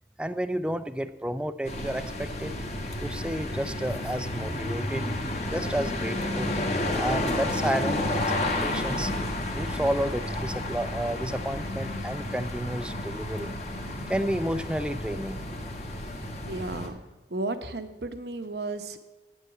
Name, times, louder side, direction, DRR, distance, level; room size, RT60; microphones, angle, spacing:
voice 1, 0.2-2.6 3.0-5.1 5.5-6.5 6.9-8.2 8.6-9.1 9.5-13.5 14.1-15.4, right 1 dB, 5° right, 11 dB, 0.4 m, -31 dB
sound 1, 1.6-16.9, left 1 dB, 40° left, 1.5 m, -31 dB
voice 2, 16.1-17.0 17.3-19.0, right 2 dB, 65° right, 9 dB, 1.0 m, -34 dB
8.9 x 8.1 x 9.2 m, 1.1 s
head